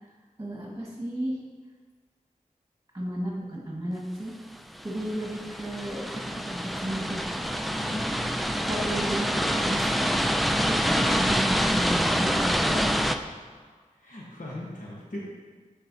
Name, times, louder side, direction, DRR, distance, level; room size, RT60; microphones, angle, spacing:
voice 1, 0.4-1.4 2.9-4.3 4.8-7.3 8.6-10.3 10.5-12.9, right 1 dB, 20° right, -5 dB, 1.7 m, -33 dB
sound 1, 4.8-13.2, equal, ahead, 0.3 m, -26 dB
voice 2, 7.7-9.0 13.1-13.7 14.0-15.2, left 1 dB, 65° left, -6 dB, 1.2 m, -40 dB
11.5 x 4.2 x 2.7 m, 1.5 s
wide cardioid pair, 45°, 14 cm